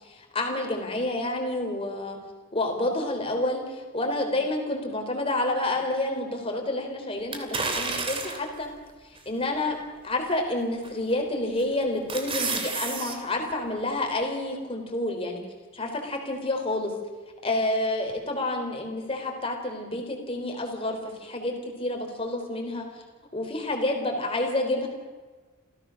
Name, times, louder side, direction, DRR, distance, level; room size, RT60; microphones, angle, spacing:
voice 1, 0.1-2.2 2.5-8.7 9.3-9.8 10.0-15.4 15.7-16.9 17.4-21.5 21.8-22.9 23.3-24.9, left 2 dB, 25° left, 3 dB, 3.8 m, -29 dB
sound 1, 7.3-8.6 9.2-9.3 10.8-11.2 11.6-13.2 13.5-13.6, right 4 dB, 25° right, 2.7 m, -30 dB
28.0 x 15.5 x 6.5 m, 1.4 s
head